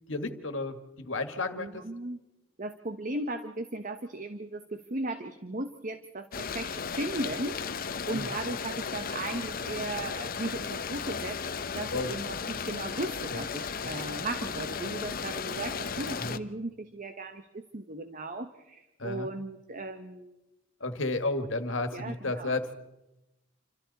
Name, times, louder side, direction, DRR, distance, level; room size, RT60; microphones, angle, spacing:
voice 1, 0.1-1.8 8.1-8.3 11.9-12.1 13.3-13.4 16.2-16.3 19.0-19.3 20.8-22.8, left 2 dB, 70° left, 8 dB, 1.9 m, -32 dB
voice 2, 1.5-2.2 2.6-7.7 8.1-11.4 11.6-20.4 21.9-22.5, right 2 dB, 40° right, 8 dB, 1.2 m, -37 dB
sound 1, 6.3-16.4, left 6 dB, 45° left, 0.8 m, -35 dB
28.0 x 26.0 x 4.2 m, 0.98 s
head